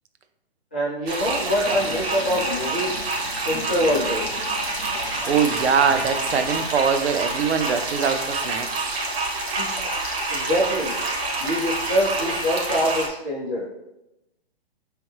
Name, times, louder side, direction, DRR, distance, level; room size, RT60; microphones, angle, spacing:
voice 1, 0.7-3.0 3.4-4.3 9.6-9.7 10.3-10.9 11.4-13.6, equal, 10° left, -10 dB, 0.4 m, -24 dB
sound 1, 1.1-13.1, right 2 dB, 70° right, 1.2 m, -27 dB
Stream, 1.6-6.7, left 6 dB, 85° left, 0.6 m, -39 dB
voice 2, 5.3-8.7, right 6 dB, 85° right, 8 dB, 0.6 m, -22 dB
4.5 x 3.4 x 3.0 m, 0.93 s
hypercardioid pair, 170°, 32 cm